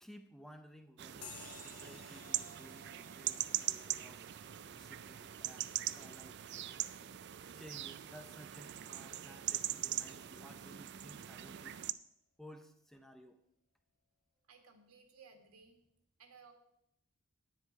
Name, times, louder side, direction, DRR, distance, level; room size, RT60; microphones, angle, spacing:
voice 1, 0.0-4.2 4.6-6.7 7.5-11.8 12.4-13.4, equal, ahead, 6 dB, 0.6 m, -56 dB
sound 1, 1.0-11.9, right 13 dB, 50° right, 0.4 m, -41 dB
sound 2, 1.2-9.1, left 6 dB, 75° left, 1.7 m, -59 dB
voice 2, 14.5-15.8 16.2-16.5, right 5 dB, 80° right, 5 dB, 1.9 m, -59 dB
10.0 x 9.8 x 4.7 m, 0.76 s
head